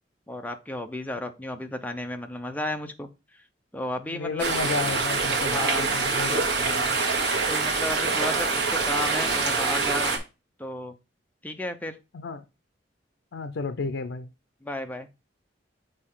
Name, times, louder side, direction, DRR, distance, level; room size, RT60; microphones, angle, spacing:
voice 1, 0.3-3.1 3.7-4.4 5.5-5.9 7.5-10.2 10.6-10.9 11.4-12.0 14.6-15.1, left 1 dB, 10° left, 0.7 m, -33 dB
voice 2, 4.1-7.0 12.1-12.4 13.3-14.3, left 4 dB, 75° left, 0.5 m, -32 dB
sound 1, 4.4-10.2, right 4 dB, 65° right, 1.7 m, -25 dB
6.6 x 4.5 x 3.7 m
head